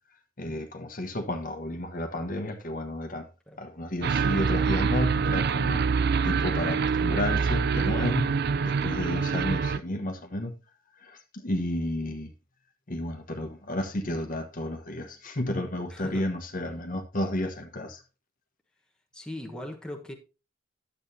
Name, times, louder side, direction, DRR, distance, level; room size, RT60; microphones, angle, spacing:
voice 1, 0.4-3.3 3.6-5.9 6.2-8.4 8.6-10.5 11.0-12.3 12.9-18.0, left 1 dB, 40° left, 1.1 m, -32 dB
sound 1, 4.0-9.8, right 5 dB, 50° right, 0.5 m, -25 dB
voice 2, 15.9-16.4 19.1-20.1, left 1 dB, 5° left, 1.2 m, -39 dB
11.0 x 8.1 x 2.7 m
head